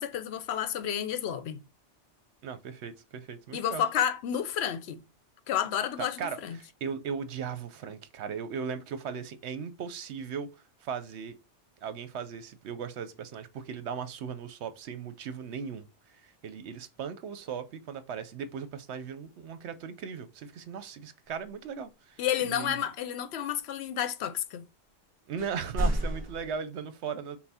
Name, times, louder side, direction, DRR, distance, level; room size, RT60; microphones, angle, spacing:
voice 1, 0.0-1.6 3.5-5.0 5.5-6.6 22.2-24.7, left 10 dB, 65° left, 0.8 m, -31 dB
voice 2, 2.4-3.8 6.0-10.5 10.8-11.4 11.8-22.9 25.3-27.4, right 6 dB, 70° right, 0.9 m, -38 dB
sound 1, 25.4-26.5, equal, 20° right, 1.6 m, -30 dB
5.6 x 2.2 x 4.1 m
omnidirectional pair, 1.2 m